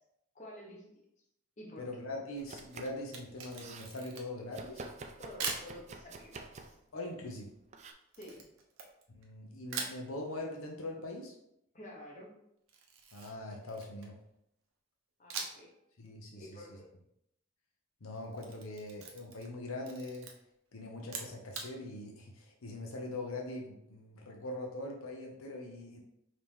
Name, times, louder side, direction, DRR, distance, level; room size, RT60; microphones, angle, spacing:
voice 1, 0.3-0.9 1.6-1.9 5.2-6.7 8.2-8.5 11.7-12.3 15.2-15.7 16.4-16.9, left 1 dB, 35° left, -2 dB, 1.1 m, -50 dB
voice 2, 1.8-4.8 6.9-7.5 9.1-11.3 13.1-14.2 16.0-16.6 18.0-20.3 20.7-26.0, left 2 dB, 85° left, 0 dB, 0.8 m, -42 dB
Domestic sounds home sounds, 2.4-3.1 3.3-3.9 4.5-6.8 7.7-7.9, right 3 dB, 35° right, 0.4 m, -48 dB
Camera, 3.0-4.5 5.4-5.7 8.1-9.3 9.7-10.0 12.7-14.2 15.3-15.7 16.1-16.2 18.1-19.5 19.8-20.3 21.0-21.7, right 5 dB, 85° right, 0.8 m, -42 dB
5.1 x 2.9 x 3.6 m, 0.78 s
head